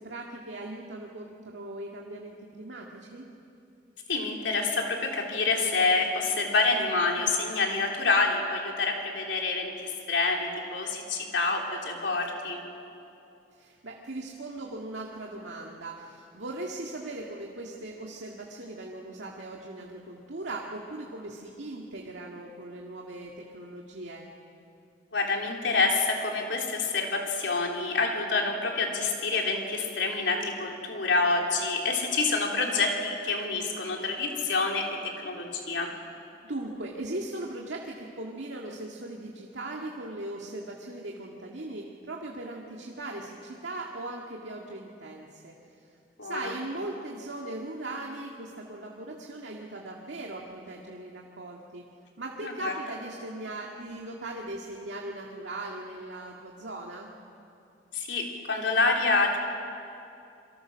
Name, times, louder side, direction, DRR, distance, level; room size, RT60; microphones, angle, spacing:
voice 1, 0.0-3.3 13.5-24.3 35.5-35.8 36.4-45.5 45.8-45.9 46.2-51.8 52.2-57.1, right 2 dB, 90° right, -1 dB, 2.0 m, -39 dB
voice 2, 4.1-12.6 25.1-34.9 35.2-35.9 46.2-46.5 52.4-52.7 57.9-59.4, left 3 dB, 90° left, 1 dB, 3.6 m, -27 dB
27.5 x 23.5 x 6.3 m, 2.7 s
head